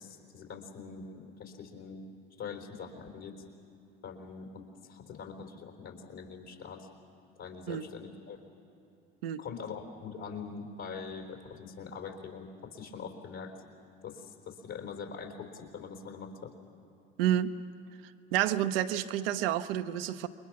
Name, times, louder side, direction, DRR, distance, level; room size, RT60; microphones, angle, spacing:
voice 1, 0.0-2.0 2.4-3.4 4.0-6.9 7.4-8.4 9.4-13.5 14.0-16.5, left 5 dB, 60° left, 3 dB, 3.9 m, -43 dB
voice 2, 17.2-17.5 18.3-20.3, right 11 dB, 80° right, 8 dB, 0.8 m, -29 dB
28.5 x 22.5 x 6.0 m, 2.8 s
hypercardioid pair, 60°, 29 cm